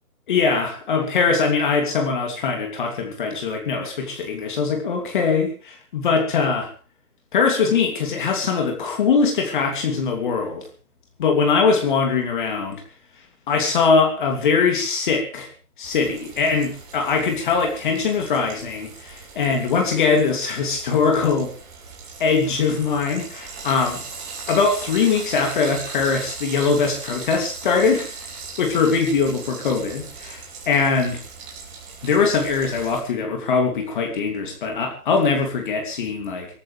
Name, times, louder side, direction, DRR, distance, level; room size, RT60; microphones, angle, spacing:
voice 1, 0.3-6.7 7.3-10.7 11.2-12.8 13.5-15.5 15.8-21.5 22.2-24.0 24.5-28.1 28.6-31.2 32.0-36.5, left 5 dB, 30° left, 3 dB, 3.0 m, -21 dB
Frying (food), 15.8-33.0, right 5 dB, 20° right, 3.7 m, -38 dB
24.5 x 14.0 x 3.5 m, 0.37 s
figure-of-eight pair, 150°, 46 cm